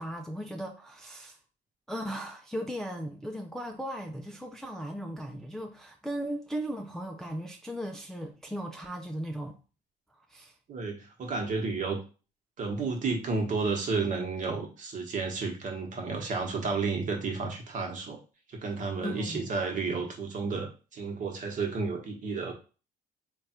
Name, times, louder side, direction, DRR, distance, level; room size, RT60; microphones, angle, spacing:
voice 1, 0.0-1.4 1.9-9.6 10.1-10.5 19.0-19.5, equal, 5° left, 0.4 m, -37 dB
voice 2, 10.7-12.0 12.6-18.2 18.6-22.5, right 4 dB, 50° right, 1.2 m, -31 dB
3.3 x 2.3 x 4.3 m
cardioid pair, 110°, 17 cm